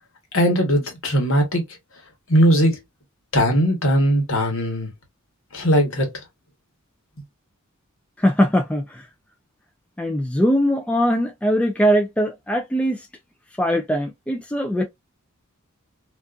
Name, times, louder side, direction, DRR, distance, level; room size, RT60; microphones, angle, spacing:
voice 1, 0.3-1.6 2.3-2.7 3.3-4.9 5.5-6.1, equal, 65° left, 1.1 m, -19 dB
voice 2, 8.2-9.1 10.0-13.1 13.6-14.8, equal, 5° left, 0.4 m, -21 dB
2.5 x 2.4 x 2.3 m
head